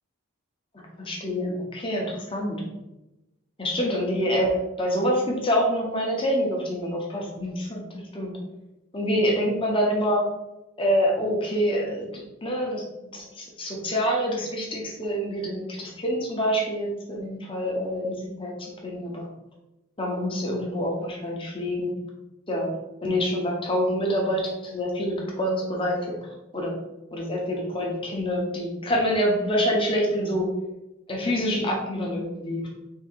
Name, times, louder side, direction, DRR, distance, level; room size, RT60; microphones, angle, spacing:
voice 1, 0.7-2.6 3.6-8.4 8.9-10.2 10.8-12.8 13.1-19.3 20.0-21.9 22.5-22.7 23.0-26.7 27.1-30.5 31.1-32.6, equal, 25° left, -1 dB, 0.8 m, -26 dB
3.7 x 2.8 x 4.4 m, 0.98 s
head